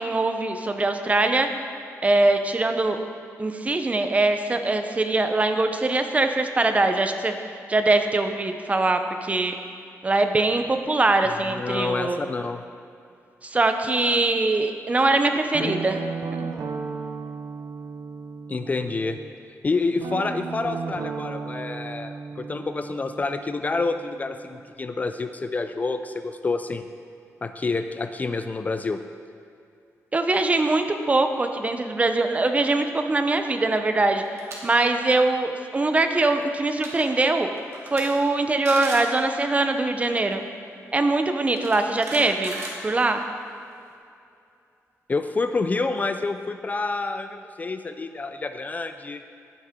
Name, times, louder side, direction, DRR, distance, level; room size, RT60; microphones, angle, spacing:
voice 1, 0.0-1.5 2.0-3.0 3.4-7.3 7.7-9.5 10.0-12.2 13.4-16.0 16.3-16.5 30.1-34.2 34.6-37.5 37.9-40.4 40.9-43.2, right 2 dB, 25° right, 7 dB, 0.6 m, -22 dB
voice 2, 11.4-12.6 15.6-15.8 18.5-19.2 19.6-26.9 27.4-29.0 45.1-49.2, left 3 dB, 30° left, 9 dB, 0.3 m, -28 dB
Guitar, 15.5-19.3 20.0-24.7, right 5 dB, 75° right, 0.7 m, -35 dB
sound 1, 34.2-34.6 35.0-35.2 36.4-36.5 36.7-37.0 37.6-38.0 38.3-38.4 38.6-39.1 40.3-40.4 41.5-43.3, right 2 dB, 55° right, 1.9 m, -36 dB
11.0 x 9.4 x 3.7 m, 2.5 s
wide cardioid pair, 120°, 6 cm